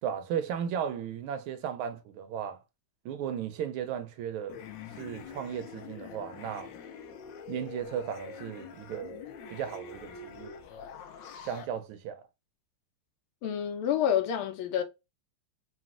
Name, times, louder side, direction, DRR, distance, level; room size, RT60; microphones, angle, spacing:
voice 1, 0.0-2.6 3.0-4.6 5.0-6.7 7.5-9.2 9.5-10.6 11.4-12.3, right 8 dB, 80° right, 1.4 m, -35 dB
sound 1, 4.5-11.7, left 6 dB, 70° left, 1.2 m, -45 dB
voice 2, 13.4-14.8, left 9 dB, 85° left, 1.5 m, -28 dB
4.0 x 2.2 x 2.4 m
omnidirectional pair, 2.3 m